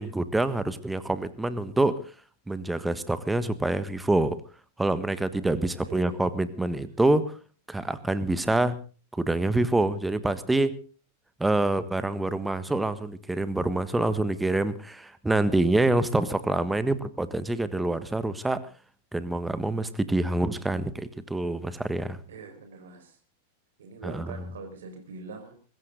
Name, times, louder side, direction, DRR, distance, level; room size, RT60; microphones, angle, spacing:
voice 1, 0.0-2.0 2.5-4.4 4.8-7.3 7.7-8.8 9.1-10.7 11.4-18.6 19.1-22.2 24.0-24.2, right 2 dB, 5° right, 14 dB, 1.4 m, -26 dB
voice 2, 5.6-6.2 6.7-6.8 22.3-23.2 23.8-25.5, right 4 dB, 65° right, 6 dB, 5.1 m, -43 dB
23.0 x 14.5 x 3.9 m, 0.37 s
figure-of-eight pair, 90°, 0 cm